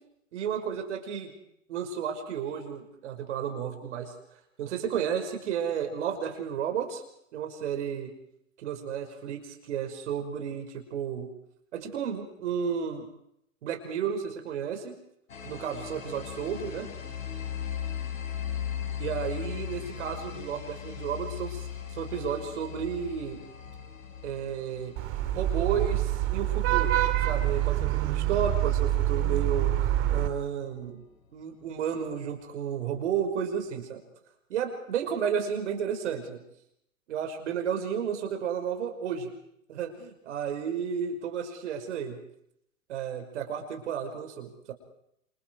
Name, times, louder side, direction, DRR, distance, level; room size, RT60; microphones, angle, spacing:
voice 1, 0.3-1.3 1.7-4.1 4.6-7.0 7.3-8.1 8.6-11.3 11.7-13.1 13.6-14.9 15.4-16.9 19.0-23.4 24.2-24.9 25.3-31.0 31.3-34.0 34.5-36.4 37.1-39.3 39.7-42.2 42.9-44.7, right 8 dB, 60° right, 5 dB, 5.6 m, -32 dB
sound 1, 15.3-30.7, left 8 dB, 75° left, 5.8 m, -39 dB
Vehicle horn car horn honking / Traffic noise roadway noise, 25.0-30.3, right 13 dB, 35° right, 2.4 m, -26 dB
28.0 x 28.0 x 4.7 m, 0.74 s
hypercardioid pair, 115°, 39 cm